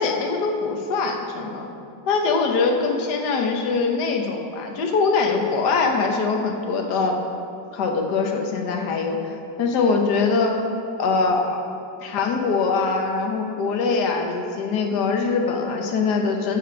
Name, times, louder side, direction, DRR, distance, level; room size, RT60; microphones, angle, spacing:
voice 1, 0.0-1.7 2.1-7.2 7.7-9.2 9.6-10.6 11.0-11.6 12.0-16.6, left 4 dB, 65° left, 2 dB, 1.5 m, -22 dB
13.5 x 5.1 x 5.9 m, 2.5 s
omnidirectional pair, 2.0 m